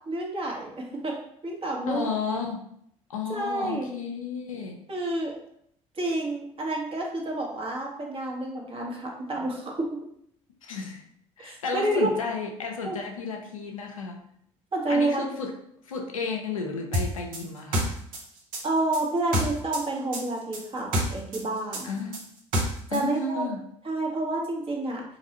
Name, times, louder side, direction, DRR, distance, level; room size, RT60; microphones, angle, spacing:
voice 1, 0.1-1.1 1.4-2.1 3.3-3.9 4.9-5.4 6.0-9.9 11.4-12.1 12.8-13.0 14.7-15.2 18.6-21.9 22.9-23.5 23.8-25.0, right 2 dB, 35° right, -1 dB, 1.2 m, -29 dB
voice 2, 1.9-2.7 3.1-4.8 10.6-11.0 11.4-14.3 14.9-15.5 15.8-18.0 21.8-22.2 22.9-23.6, left 4 dB, 85° left, 3 dB, 0.5 m, -33 dB
sound 1, 16.9-19.8 20.1-23.0, equal, 55° right, 0.9 m, -28 dB
3.9 x 2.6 x 2.9 m, 0.70 s
figure-of-eight pair, 55°, 17 cm